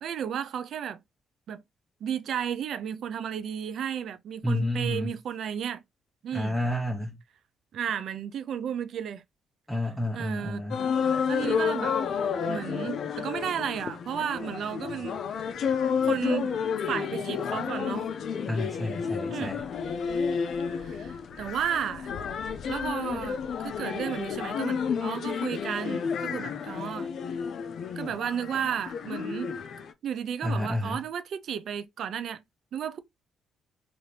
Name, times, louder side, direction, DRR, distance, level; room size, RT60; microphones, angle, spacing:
voice 1, 0.0-1.0 1.5-1.6 2.0-5.8 6.2-6.6 7.7-9.2 10.1-10.7 11.3-12.0 12.5-15.2 16.1-16.6 16.9-18.1 19.3-19.6 20.7-22.1 22.7-27.1 27.9-29.5 30.0-32.4 32.7-33.0, right 8 dB, 65° right, 0.4 m, -33 dB
voice 2, 4.4-5.1 6.3-7.2 9.7-10.8 18.5-19.6 30.4-31.0, left 1 dB, 10° left, 0.8 m, -30 dB
sound 1, 10.7-29.9, left 6 dB, 65° left, 0.4 m, -31 dB
2.8 x 2.6 x 3.2 m
cardioid pair, 90°, 0 cm